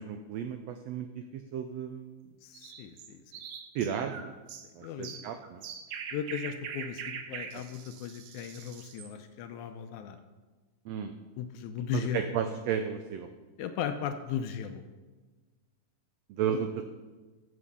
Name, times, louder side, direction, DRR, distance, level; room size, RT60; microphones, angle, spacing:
voice 1, 0.0-2.3 3.7-4.3 4.8-5.6 7.5-7.6 10.9-11.1 11.9-13.3 16.3-16.8, right 8 dB, 90° right, 7 dB, 1.4 m, -34 dB
voice 2, 2.4-3.2 4.8-5.3 6.1-10.2 11.4-12.3 13.6-14.8, left 8 dB, 80° left, 8 dB, 1.9 m, -37 dB
sound 1, 2.5-9.1, right 7 dB, 70° right, 1.5 m, -43 dB
14.5 x 6.3 x 5.4 m, 1.3 s
omnidirectional pair, 3.7 m